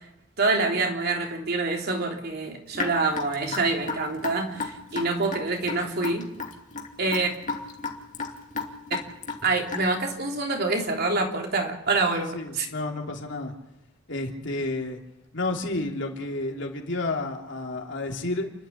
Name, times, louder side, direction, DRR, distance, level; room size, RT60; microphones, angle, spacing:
voice 1, 0.4-6.3 7.0-7.3 9.4-12.7, right 3 dB, 55° right, 2 dB, 3.5 m, -26 dB
Raindrop / Drip, 2.7-10.1, left 4 dB, 40° left, 2.8 m, -33 dB
voice 2, 12.3-13.5 14.1-15.0 15.3-18.5, left 2 dB, 65° left, 1 dB, 3.4 m, -30 dB
30.0 x 11.5 x 8.7 m, 0.86 s
head